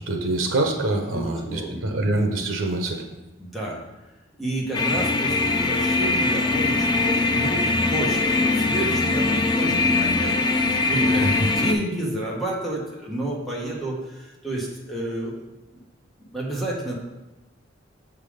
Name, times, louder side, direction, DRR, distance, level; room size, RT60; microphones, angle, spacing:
voice 1, 0.1-3.0 11.2-11.3, right 2 dB, 85° right, 3 dB, 0.9 m, -25 dB
voice 2, 1.1-1.8 3.4-3.8 4.4-7.6 7.9-10.5 10.8-15.3 15.7-15.8 16.3-16.9, right 1 dB, ahead, -4 dB, 1.3 m, -30 dB
sound 1, 4.7-11.7, left 3 dB, 20° left, 0.4 m, -22 dB
6.5 x 3.7 x 5.0 m, 1.0 s
head